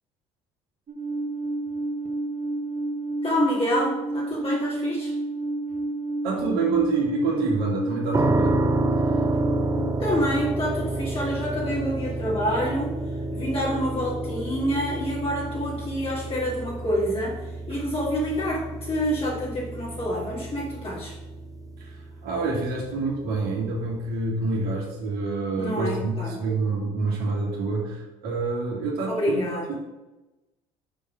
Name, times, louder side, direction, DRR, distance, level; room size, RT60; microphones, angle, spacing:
Alarm, 0.9-9.8, right 2 dB, 50° right, 1.4 m, -30 dB
voice 1, 3.2-5.1 10.0-13.0 13.3-17.4 17.7-21.2 25.6-26.4 29.1-29.7, equal, 35° left, -5 dB, 2.2 m, -27 dB
voice 2, 6.2-8.6 9.0-9.2 21.8-29.4 29.7-29.8, right 3 dB, 75° right, -2 dB, 2.3 m, -27 dB
sound 1, 8.1-23.0, right 2 dB, 20° right, 0.7 m, -29 dB
6.8 x 3.8 x 6.0 m, 1.1 s
supercardioid pair, 70°, 16 cm